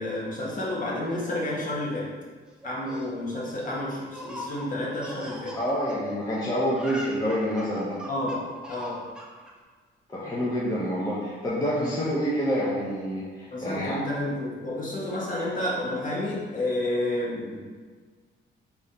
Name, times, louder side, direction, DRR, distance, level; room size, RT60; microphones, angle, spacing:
voice 1, 0.0-2.1 2.6-5.6 8.1-8.4 8.7-9.0 11.8-12.1 13.5-17.6, left 1 dB, 40° left, -5 dB, 1.4 m, -30 dB
Laughter, 2.6-6.4 6.7-9.5, left 1 dB, 5° right, 0.8 m, -41 dB
voice 2, 5.5-8.0 10.1-14.0, equal, 20° left, -7 dB, 1.0 m, -27 dB
3.8 x 3.2 x 4.2 m, 1.5 s
cardioid pair, 90°, 20 cm